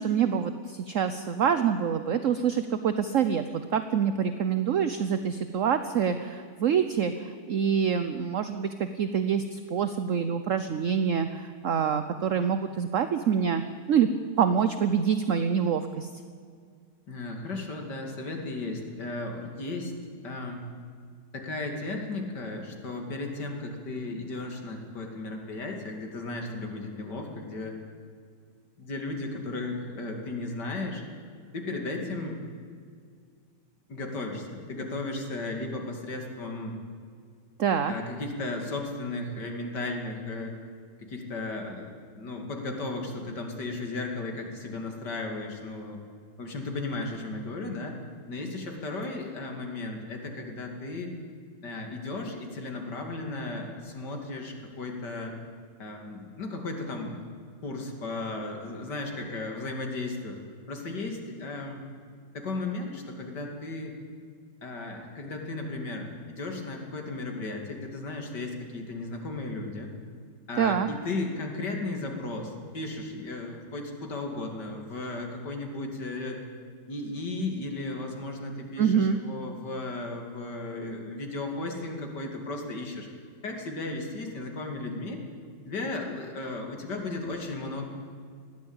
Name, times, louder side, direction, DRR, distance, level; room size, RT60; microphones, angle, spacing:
voice 1, 0.0-13.6 13.9-14.1 14.4-16.1 37.6-37.9 70.6-70.9 78.8-79.2, right 7 dB, 55° right, 10 dB, 1.0 m, -26 dB
voice 2, 17.1-19.9 20.2-20.6 21.3-27.8 28.8-31.0 31.5-32.4 33.9-36.8 37.9-40.5 41.0-46.0 46.4-48.0 48.3-51.1 51.6-55.3 55.8-57.2 57.6-60.4 60.7-61.8 62.3-64.0 64.6-69.9 70.5-76.4 76.9-83.1 83.4-85.2 85.7-87.8, left 2 dB, 80° left, 2 dB, 3.2 m, -35 dB
20.0 x 15.0 x 8.9 m, 2.1 s
omnidirectional pair, 1.8 m